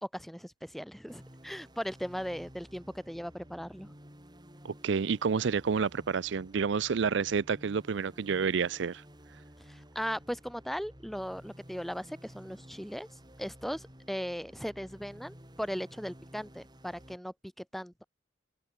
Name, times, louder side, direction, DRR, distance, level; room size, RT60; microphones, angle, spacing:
voice 1, 0.0-3.9 9.7-13.1 13.4-18.0, equal, ahead, 2.9 m, -38 dB
sound 1, 1.1-17.2, equal, 20° right, 7.5 m, -53 dB
voice 2, 4.6-9.0, right 5 dB, 75° right, 0.5 m, -29 dB
open air
head